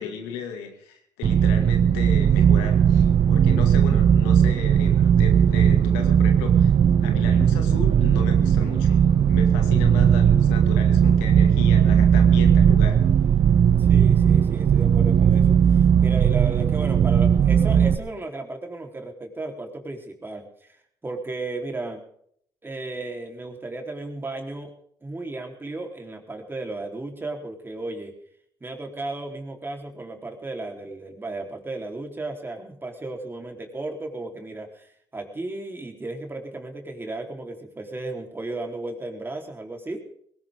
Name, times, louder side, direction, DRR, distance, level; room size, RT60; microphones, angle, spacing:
voice 1, 0.0-6.7 7.0-9.0 9.3-13.1, left 7 dB, 80° left, 5 dB, 2.3 m, -35 dB
sound 1, 1.2-18.0, right 8 dB, 55° right, 1.0 m, -18 dB
voice 2, 13.8-20.8 21.0-22.0 22.6-24.7 25.0-28.1 28.6-40.0, right 2 dB, 20° right, 2 dB, 3.8 m, -34 dB
19.5 x 17.5 x 3.8 m, 0.67 s
hypercardioid pair, 60°, 10 cm